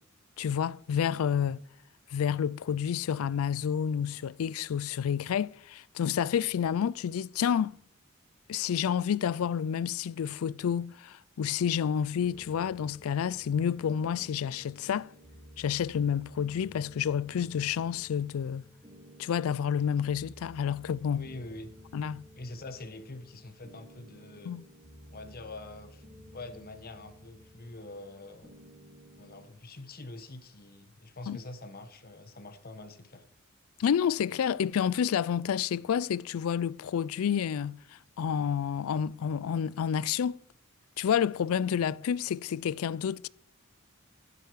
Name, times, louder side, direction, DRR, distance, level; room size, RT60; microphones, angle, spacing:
voice 1, 0.4-1.6 2.1-7.8 8.5-15.1 15.6-18.6 19.2-21.3 21.9-22.2 24.5-24.6 31.3-31.4 33.8-37.8 38.2-40.4 41.0-43.3, left 8 dB, 75° left, 0.3 m, -29 dB
sound 1, 12.1-29.5, equal, 25° right, 2.2 m, -54 dB
voice 2, 21.1-21.7 22.4-24.5 25.1-26.0 26.3-28.6 29.2-33.2, left 2 dB, 45° left, 1.3 m, -45 dB
14.0 x 8.2 x 4.7 m
head